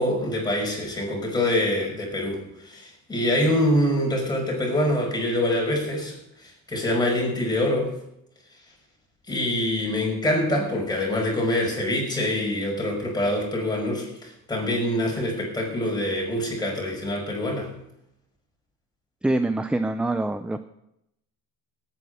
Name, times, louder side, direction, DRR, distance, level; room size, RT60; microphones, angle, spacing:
voice 1, 0.0-6.1 6.4-7.9 9.3-17.7, left 1 dB, 10° left, -1 dB, 5.7 m, -25 dB
voice 2, 19.2-20.6, right 2 dB, 5° right, 10 dB, 0.4 m, -25 dB
17.5 x 9.4 x 5.5 m, 0.80 s
cardioid pair, 140°, 32 cm